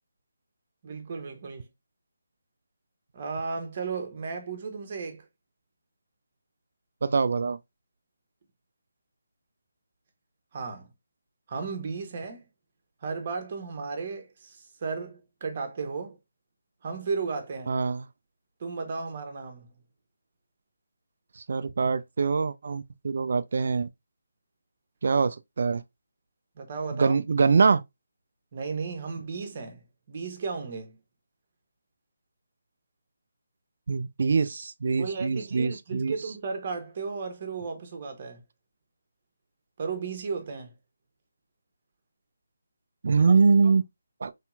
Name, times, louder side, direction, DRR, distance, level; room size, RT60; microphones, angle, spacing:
voice 1, 0.8-1.7 3.1-5.2 10.5-10.9 11.5-12.4 13.0-16.2 16.8-17.8 18.6-19.7 26.6-27.2 28.5-31.0 35.0-38.4 39.8-40.7 43.2-43.3 43.6-43.7, right 4 dB, 40° right, 0.9 m, -34 dB
voice 2, 7.0-7.6 17.7-18.0 21.4-23.9 25.0-25.8 26.9-27.8 33.9-36.1 43.0-43.8 44.2-44.3, right 4 dB, 55° right, 0.3 m, -24 dB
3.2 x 2.9 x 2.3 m
figure-of-eight pair, 155°, 0 cm